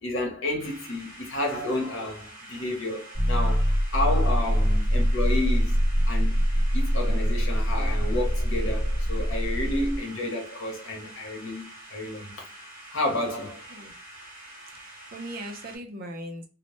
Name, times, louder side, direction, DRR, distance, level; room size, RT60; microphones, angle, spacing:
voice 1, 0.0-5.8 6.1-6.4 6.7-12.4 12.9-13.7, left 1 dB, 85° left, 0.8 m, -31 dB
sound 1, 0.6-15.8, right 1 dB, 5° right, 1.0 m, -46 dB
sound 2, 3.1-10.0, equal, 50° left, 0.7 m, -24 dB
voice 2, 14.8-16.5, right 1 dB, 50° right, 0.5 m, -39 dB
2.1 x 2.0 x 2.9 m
head